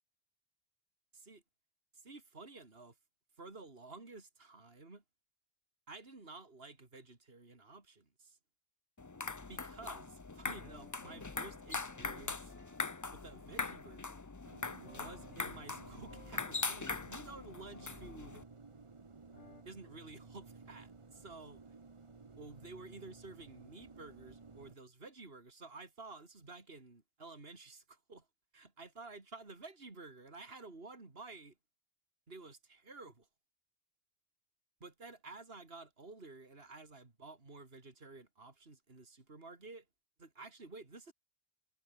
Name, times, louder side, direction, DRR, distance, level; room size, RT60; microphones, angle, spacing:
voice 1, 1.9-3.0 3.4-5.0 5.9-8.4 9.5-12.5 13.1-14.3 14.8-18.5 19.7-21.7 22.4-28.3 28.5-31.6 32.3-33.3 34.8-39.9 40.2-41.1, right 3 dB, 55° right, 3.4 m, -52 dB
sound 1, 9.0-18.4, left 3 dB, 20° left, 0.5 m, -42 dB
sound 2, 10.5-18.9 19.3-19.6, left 3 dB, 80° left, 3.7 m, -64 dB
sound 3, 14.4-24.8, right 4 dB, 30° right, 1.0 m, -56 dB
omnidirectional pair, 1.2 m